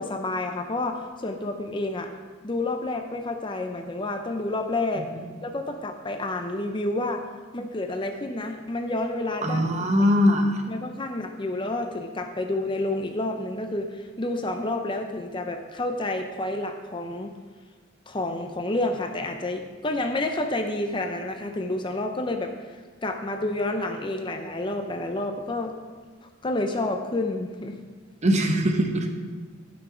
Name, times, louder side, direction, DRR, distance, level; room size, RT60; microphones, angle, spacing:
voice 1, 0.0-2.1 2.4-5.1 5.4-7.3 7.5-9.9 10.7-17.3 18.1-22.5 23.0-25.8 26.4-27.8, left 2 dB, 25° left, 5 dB, 0.5 m, -29 dB
voice 2, 9.4-10.6 28.2-29.1, equal, 35° right, 4 dB, 0.9 m, -21 dB
11.5 x 6.1 x 5.0 m, 1.5 s
head